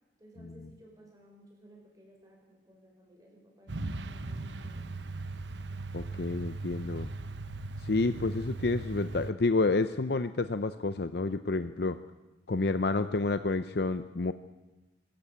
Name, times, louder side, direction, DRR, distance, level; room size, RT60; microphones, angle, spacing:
voice 1, 0.2-4.9, right 1 dB, 20° right, 0 dB, 5.9 m, -57 dB
Truck, 3.7-9.3, right 2 dB, 75° right, 1.0 m, -38 dB
voice 2, 5.9-7.1 7.8-12.0 12.5-14.3, left 3 dB, 60° left, 11 dB, 0.6 m, -29 dB
24.0 x 14.0 x 8.7 m, 1.1 s
head